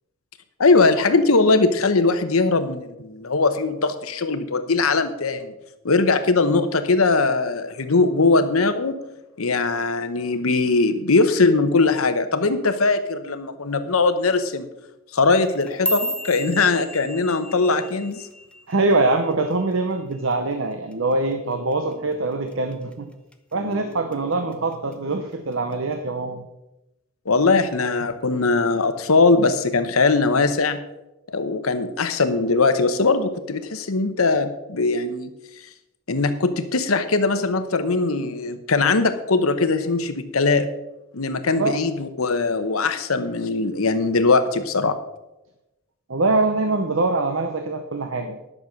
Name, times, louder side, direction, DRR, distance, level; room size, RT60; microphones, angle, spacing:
voice 1, 0.6-5.5 5.8-9.0 9.4-14.7 15.1-18.2 27.3-30.8 31.3-35.3 36.1-40.7 41.1-45.0, left 3 dB, 90° left, 9 dB, 1.0 m, -20 dB
sound 1, 15.4-19.8 20.1-20.5 20.9-21.3 21.7-21.9 22.5-22.9 23.3-24.1 24.5-24.9 25.7-25.8, equal, 5° left, 0.7 m, -33 dB
voice 2, 18.7-23.1 23.5-26.5 41.5-41.8 46.1-48.5, right 2 dB, 65° right, 7 dB, 0.9 m, -23 dB
11.0 x 6.7 x 6.1 m, 0.95 s
head